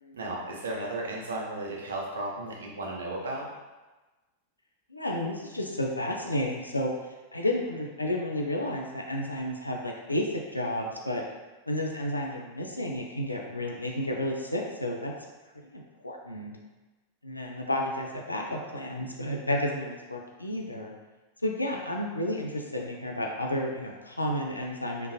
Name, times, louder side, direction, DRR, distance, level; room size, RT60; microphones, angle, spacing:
voice 1, 0.1-3.5, right 2 dB, 65° right, -2 dB, 0.7 m, -34 dB
voice 2, 4.9-11.3 11.7-15.1 15.7-16.6 17.2-20.9 21.4-25.1, left 1 dB, 85° left, 0 dB, 0.4 m, -31 dB
3.6 x 2.5 x 2.7 m, 1.2 s
figure-of-eight pair, 90°, 0 cm